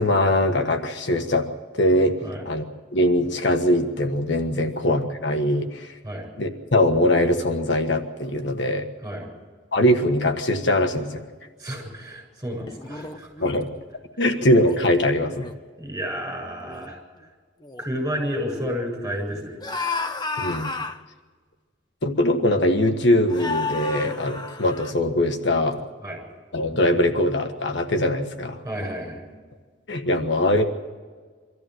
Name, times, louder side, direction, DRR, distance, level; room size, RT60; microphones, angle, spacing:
voice 1, 0.0-2.2 2.4-2.6 2.9-6.0 6.4-8.9 9.7-11.2 13.4-13.7 14.2-15.4 20.4-20.7 22.0-25.8 26.5-28.6 29.9-30.6, left 1 dB, 70° left, 6 dB, 1.5 m, -22 dB
voice 2, 11.6-13.5 15.8-17.0 17.8-19.6 26.0-26.2 28.6-29.2, equal, 15° right, 0 dB, 7.6 m, -31 dB
sound 1, 12.7-13.7 14.4-14.8 15.2-15.6 16.3-16.4 16.6-16.9 17.6-17.8 19.6-21.0 22.0-22.1 23.3-24.9, left 4 dB, 20° left, 0.9 m, -32 dB
24.0 x 14.0 x 7.8 m, 1.5 s
head